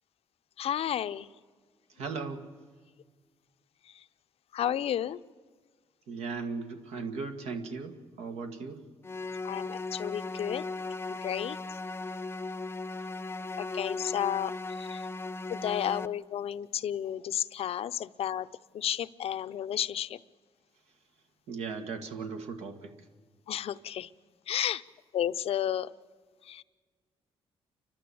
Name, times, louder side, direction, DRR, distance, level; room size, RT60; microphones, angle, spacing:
voice 1, 0.6-1.3 3.9-4.0 4.5-5.2 9.4-10.7 11.1-11.6 13.6-15.1 15.5-18.5 18.7-20.2 23.5-24.1 24.5-24.8 25.1-25.9 26.4-26.6, left 10 dB, 70° left, 14 dB, 0.6 m, -32 dB
voice 2, 2.0-2.5 6.1-8.8 21.5-22.9, right 4 dB, 85° right, 6 dB, 1.9 m, -37 dB
sound 1, 9.0-16.1, left 3 dB, 20° left, 0.6 m, -37 dB
29.5 x 12.0 x 8.5 m, 1.5 s
cardioid pair, 90°, 11 cm